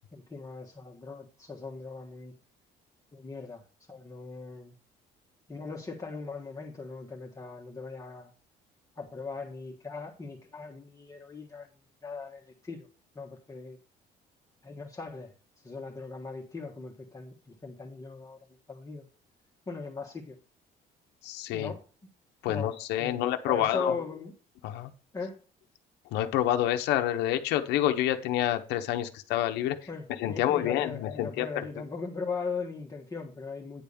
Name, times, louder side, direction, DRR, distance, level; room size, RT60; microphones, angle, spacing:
voice 1, 0.1-2.3 3.1-3.6 3.9-4.7 5.5-8.3 9.0-11.7 12.0-12.9 13.1-13.8 14.6-15.3 15.6-18.4 18.7-19.0 19.7-20.3 21.5-21.8 22.5-22.7 23.0-24.3 25.1-25.4 29.9-33.8, left 4 dB, 20° left, -1 dB, 1.3 m, -39 dB
voice 2, 21.2-21.7 22.4-23.9 24.6-24.9 26.1-29.8 30.2-31.6, left 12 dB, 90° left, 6 dB, 0.9 m, -28 dB
9.7 x 3.5 x 6.9 m, 0.38 s
cardioid pair, 110°, 17 cm